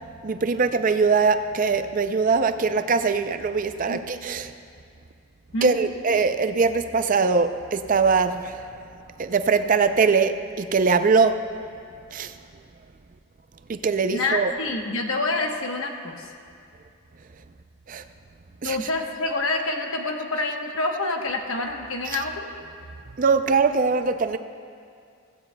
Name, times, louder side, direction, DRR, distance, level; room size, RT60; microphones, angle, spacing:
voice 1, 0.2-4.5 5.6-8.6 9.2-11.4 12.1-12.3 13.7-14.5 17.9-18.0 18.6-18.8 22.1-22.2 23.2-24.4, right 4 dB, 40° right, 9 dB, 0.4 m, -22 dB
voice 2, 5.5-5.9 14.1-16.3 18.6-22.5, left 2 dB, 65° left, 3 dB, 1.1 m, -27 dB
16.5 x 16.0 x 2.2 m, 2.3 s
head